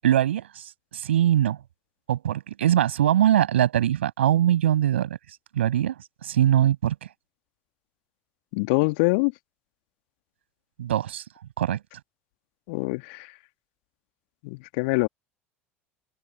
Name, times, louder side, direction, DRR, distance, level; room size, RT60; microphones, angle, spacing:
voice 1, 0.0-1.6 2.1-5.2 5.5-5.9 6.2-7.1 10.8-11.2 11.6-11.8, right 11 dB, 70° right, 7.6 m, -22 dB
voice 2, 8.5-9.3 12.7-13.3 14.4-15.1, left 29 dB, 60° left, 2.3 m, -24 dB
open air
figure-of-eight pair, 70°, 7 cm